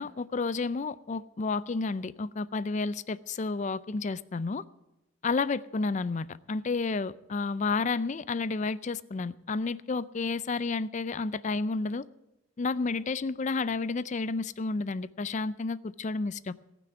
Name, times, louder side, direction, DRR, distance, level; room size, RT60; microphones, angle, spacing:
voice 1, 0.0-4.6 5.2-12.1 12.6-16.5, left 4 dB, 35° left, 0.4 m, -31 dB
18.0 x 6.1 x 9.1 m
head